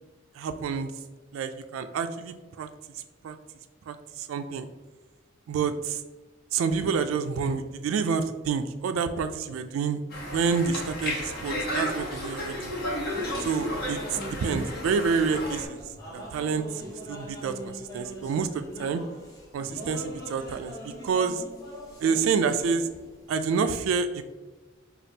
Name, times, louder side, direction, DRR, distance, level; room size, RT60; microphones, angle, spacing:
voice 1, 0.4-0.9 1.3-2.7 2.9-3.4 3.9-4.7 5.5-6.0 6.5-10.0 10.3-12.7 13.4-15.8 16.1-16.6 17.1-19.0 19.5-21.4 22.0-22.9 23.3-24.2, right 5 dB, 90° right, 8 dB, 0.3 m, -28 dB
Conversation, 10.1-15.7, left 1 dB, 50° left, 1.0 m, -33 dB
sound 1, 13.0-23.5, equal, 15° left, 0.7 m, -42 dB
5.1 x 2.4 x 2.7 m, 1.2 s
head